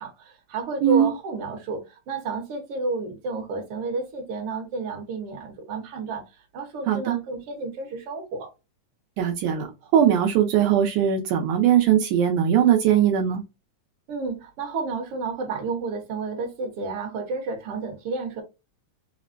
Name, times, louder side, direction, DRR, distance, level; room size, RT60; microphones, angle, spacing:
voice 1, 0.0-6.2 6.5-8.5 14.1-18.4, right 3 dB, 60° right, 1.7 m, -31 dB
voice 2, 0.8-1.1 6.9-7.2 9.2-9.7 9.9-13.4, right 9 dB, 80° right, 2.1 m, -20 dB
5.1 x 2.0 x 2.5 m
omnidirectional pair, 3.6 m